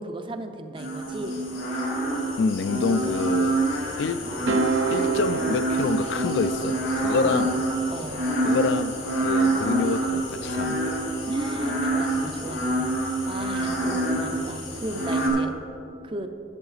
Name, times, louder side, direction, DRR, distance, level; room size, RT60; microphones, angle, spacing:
voice 1, 0.0-1.4 7.1-7.3 7.6-8.2 11.3-12.9 13.3-15.5 16.0-16.3, right 1 dB, 25° right, 0.5 m, -35 dB
sound 1, 0.8-15.3, right 1 dB, 90° left, 2.4 m, -26 dB
voice 2, 2.4-3.6 4.0-7.6 8.4-11.0, left 4 dB, 65° left, 0.3 m, -27 dB
sound 2, 4.5-6.9, right 7 dB, 80° right, 0.5 m, -28 dB
10.5 x 8.4 x 4.1 m
head